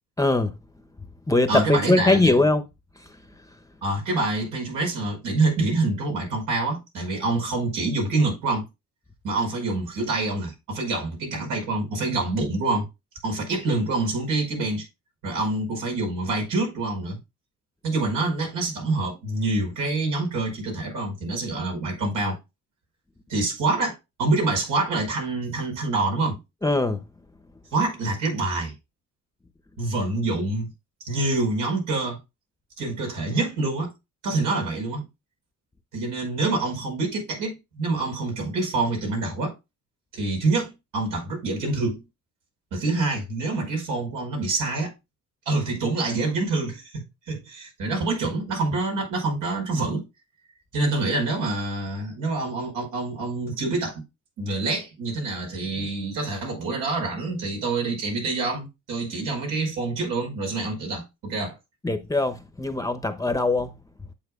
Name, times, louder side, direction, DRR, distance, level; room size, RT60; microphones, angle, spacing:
voice 1, 0.2-0.6 1.3-2.6 3.0-3.2 26.6-27.0 61.8-63.8, left 2 dB, 10° left, 0.9 m, -22 dB
voice 2, 1.5-2.3 3.8-8.7 9.2-12.9 13.2-14.9 15.2-17.2 17.8-22.4 23.3-26.4 27.7-28.7 29.8-30.7 31.0-32.2 32.8-33.9 34.2-35.1 35.9-39.5 40.1-42.0 42.7-44.9 45.5-50.1 50.7-54.0 54.4-61.6, right 3 dB, 90° right, 5.2 m, -26 dB
9.0 x 7.5 x 2.4 m
cardioid pair, 90°, 30 cm